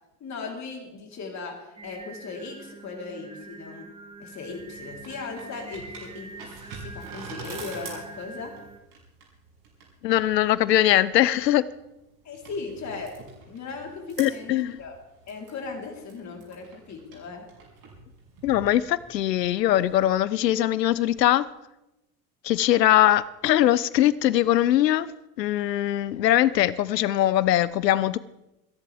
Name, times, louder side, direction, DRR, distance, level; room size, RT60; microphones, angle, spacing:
voice 1, 0.2-3.9 4.2-8.5 12.2-13.1 13.5-15.0 15.3-17.4, left 4 dB, 35° left, 3.8 m, -38 dB
Singing, 1.8-8.8, right 2 dB, 10° right, 1.4 m, -44 dB
sound 1, 4.4-20.1, right 4 dB, 50° right, 6.4 m, -46 dB
voice 2, 10.0-11.7 14.2-14.8 18.4-21.5 22.4-25.1 25.4-28.2, left 13 dB, 80° left, 0.7 m, -21 dB
28.0 x 11.0 x 3.5 m
hypercardioid pair, 80°, 48 cm